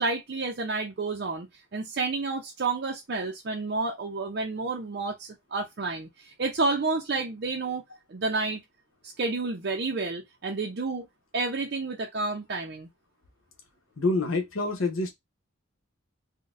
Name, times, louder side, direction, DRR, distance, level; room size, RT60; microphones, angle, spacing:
voice 1, 0.0-1.5 1.7-7.8 8.1-8.6 9.2-11.1 11.3-12.9, right 3 dB, 50° right, 0.5 m, -30 dB
voice 2, 14.0-15.1, left 2 dB, 80° left, 0.9 m, -26 dB
3.9 x 2.2 x 2.5 m
head